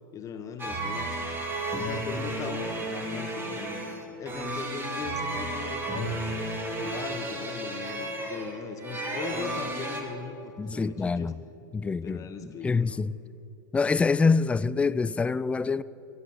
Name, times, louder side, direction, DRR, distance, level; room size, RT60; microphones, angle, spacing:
voice 1, 0.1-1.2 1.7-6.1 6.8-11.3 12.0-13.1, left 6 dB, 30° left, 1.3 m, -39 dB
sound 1, 0.6-10.0, right 1 dB, 20° right, 2.6 m, -33 dB
voice 2, 10.6-11.3 11.7-13.1 13.7-15.8, left 4 dB, 10° left, 0.3 m, -26 dB
15.5 x 10.5 x 7.2 m
hypercardioid pair, 105°, 11 cm